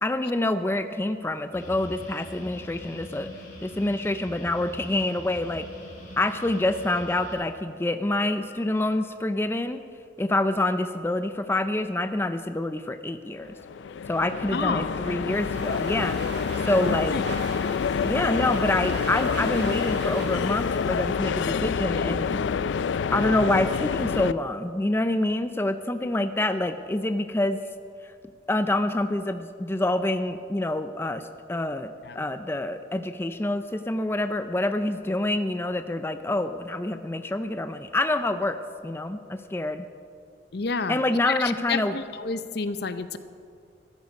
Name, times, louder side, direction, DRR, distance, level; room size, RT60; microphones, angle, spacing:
voice 1, 0.0-3.3 3.6-5.7 6.2-9.8 10.2-13.6 14.1-16.2 16.6-17.2 18.0-22.4 23.1-27.6 28.5-39.9 40.9-41.9, left 2 dB, 15° left, 9 dB, 0.4 m, -27 dB
sound 1, 1.5-7.3, equal, 45° left, 4.1 m, -43 dB
sound 2, 13.4-24.3, left 6 dB, 90° left, 0.4 m, -27 dB
voice 2, 14.5-15.0 16.8-17.2 32.0-32.2 40.5-41.0 41.3-43.2, left 4 dB, 65° left, 12 dB, 0.7 m, -30 dB
Domestic sounds home sounds, 15.1-21.9, right 6 dB, 65° right, 0.6 m, -42 dB
14.5 x 13.5 x 5.3 m, 2.3 s
head